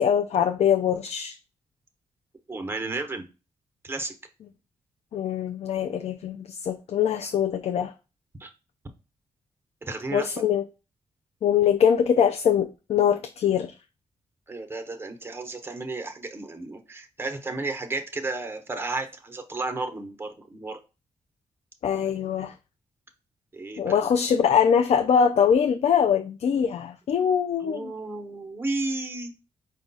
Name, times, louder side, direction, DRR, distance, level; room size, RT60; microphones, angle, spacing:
voice 1, 0.0-1.4 5.1-7.9 10.1-10.6 11.4-13.7 21.8-22.5 23.8-27.9, left 8 dB, 65° left, 0.4 m, -23 dB
voice 2, 2.5-3.3 3.8-4.1 8.4-8.5 9.8-10.3 14.5-20.8 23.5-24.1 27.2-27.3 27.6-29.3, right 3 dB, 20° right, 0.9 m, -33 dB
4.7 x 2.3 x 3.9 m
cardioid pair, 70°, 12 cm